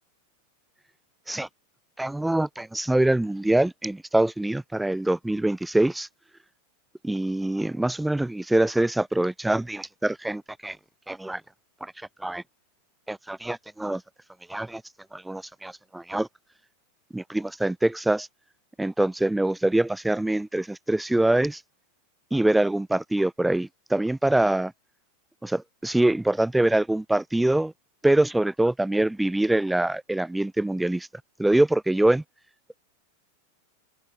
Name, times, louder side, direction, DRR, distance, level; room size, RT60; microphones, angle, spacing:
voice 1, 2.0-6.1 7.0-10.8 11.1-11.4 11.8-11.9 12.2-12.4 13.1-14.0 14.5-14.8 15.1-16.3 17.1-18.3 18.8-21.6 22.3-24.7 25.4-27.7 28.0-31.1 31.4-32.2, right 1 dB, 5° right, 0.8 m, -24 dB
figure-of-eight pair, 90°, 0 cm